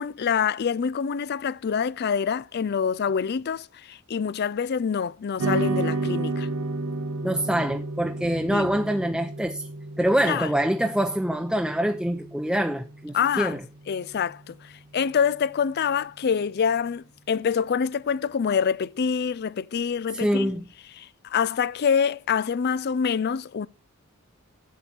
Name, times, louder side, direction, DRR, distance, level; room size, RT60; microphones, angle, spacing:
voice 1, 0.0-6.5 8.5-8.7 10.2-10.5 13.1-13.6 13.9-20.5 21.0-23.7, left 7 dB, 50° left, 0.4 m, -26 dB
sound 1, 5.4-13.9, right 2 dB, 85° right, 0.7 m, -32 dB
voice 2, 7.2-9.7 10.0-13.6 20.1-20.6, right 1 dB, 5° right, 0.7 m, -25 dB
11.0 x 8.2 x 4.4 m
head